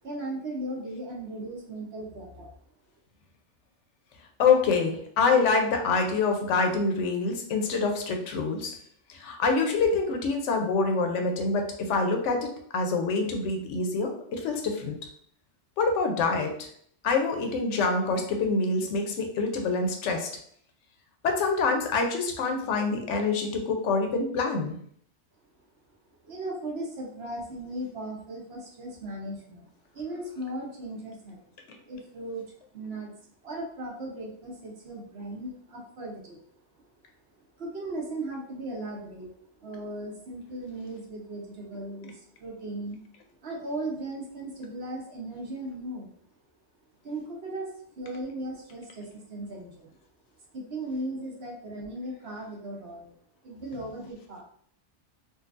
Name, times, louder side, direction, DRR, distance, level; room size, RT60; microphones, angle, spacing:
voice 1, 0.0-2.5 25.6-25.7 26.2-31.5 31.9-36.4 36.7-36.8 37.6-43.0 43.4-46.1 47.0-50.0 50.5-53.1 53.4-54.4, right 1 dB, 60° right, -2 dB, 1.1 m, -37 dB
voice 2, 4.4-8.7 9.1-15.0 15.8-16.7 17.0-20.3 21.2-24.8, left 4 dB, 80° left, 4 dB, 1.0 m, -26 dB
3.8 x 2.3 x 2.5 m, 0.63 s
omnidirectional pair, 1.2 m